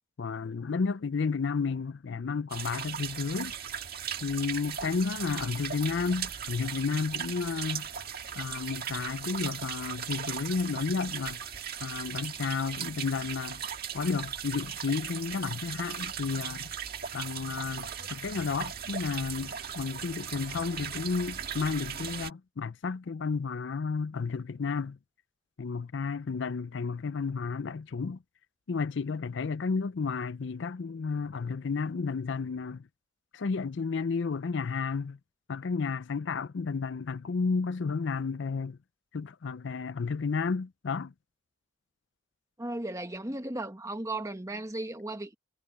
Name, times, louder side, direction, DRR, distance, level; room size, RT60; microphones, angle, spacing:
voice 1, 0.2-3.6 4.2-7.9 8.4-11.4 11.8-13.6 13.9-16.7 17.1-25.0 25.6-28.2 28.7-32.8 33.3-35.2 35.5-38.8 39.1-41.1, left 5 dB, 60° left, 0.5 m, -32 dB
sound 1, 2.5-22.3, right 8 dB, 50° right, 1.8 m, -38 dB
voice 2, 42.6-45.4, right 2 dB, 15° right, 1.6 m, -35 dB
head